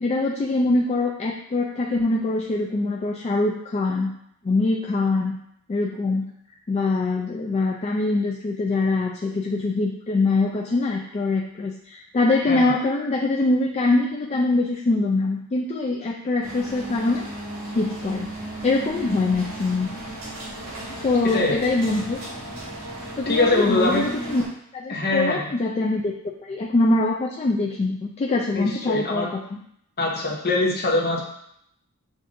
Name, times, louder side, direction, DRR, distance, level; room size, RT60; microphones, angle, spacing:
voice 1, 0.0-4.1 4.4-5.4 5.7-6.3 6.7-17.2 17.7-18.3 18.6-19.9 20.9-22.2 23.2-24.4 24.7-26.1 26.4-29.6, left 2 dB, 30° left, -1 dB, 0.3 m, -23 dB
voice 2, 12.5-12.8 21.3-21.6 23.3-24.1 24.9-25.4 28.5-29.3 30.0-31.2, left 2 dB, 45° left, -1 dB, 0.9 m, -23 dB
sound 1, 16.4-24.5, right 1 dB, 65° right, 1.8 m, -35 dB
7.2 x 2.6 x 2.6 m, 0.74 s
head